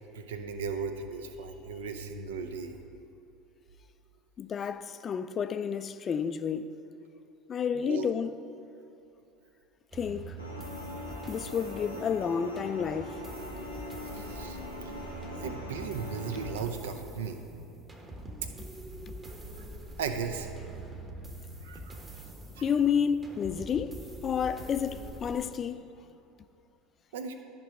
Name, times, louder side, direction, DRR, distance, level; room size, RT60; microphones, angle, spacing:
voice 1, 0.1-2.8 7.7-8.1 14.1-14.6 15.4-17.5 20.0-20.5 21.6-22.0 22.6-22.7 27.1-27.3, right 5 dB, 65° right, 0.6 m, -36 dB
voice 2, 4.4-6.7 7.5-8.3 9.9-10.3 11.3-13.2 14.2-14.3 19.1-19.2 22.6-24.0 24.2-25.8, left 7 dB, 30° left, 0.4 m, -30 dB
sound 1, 9.9-25.4, right 1 dB, 20° right, 1.2 m, -44 dB
sound 2, 10.4-16.5, left 2 dB, 90° right, 1.2 m, -42 dB
13.0 x 5.3 x 5.0 m
figure-of-eight pair, 70°, 0 cm